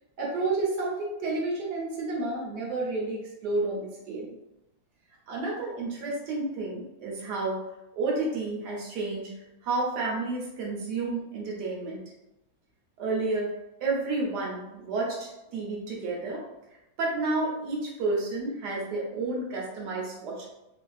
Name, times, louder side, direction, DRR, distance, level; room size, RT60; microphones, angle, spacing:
voice 1, 0.2-4.3 5.3-7.6 7.9-9.3 9.6-12.0 13.0-13.6 13.8-16.4 17.0-20.5, right 3 dB, 75° right, -3 dB, 1.4 m, -30 dB
3.3 x 2.5 x 2.3 m, 0.91 s
omnidirectional pair, 1.8 m